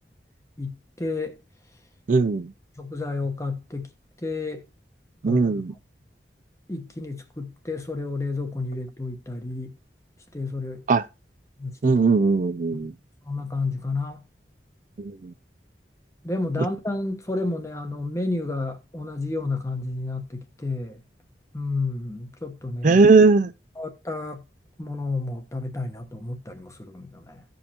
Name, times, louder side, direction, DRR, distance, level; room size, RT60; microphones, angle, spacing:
voice 1, 0.6-1.4 2.8-3.9 4.2-4.7 5.3-5.6 6.7-9.7 10.3-10.8 11.6-12.0 12.7-12.8 13.2-14.2 16.2-21.0 21.5-23.0 23.8-24.4 24.8-27.4, left 3 dB, 15° left, 1.0 m, -31 dB
voice 2, 2.1-2.5 5.2-5.7 10.9-11.0 11.8-12.9 15.0-15.3 22.8-23.5, right 4 dB, 45° right, 0.4 m, -18 dB
15.5 x 5.3 x 2.9 m
head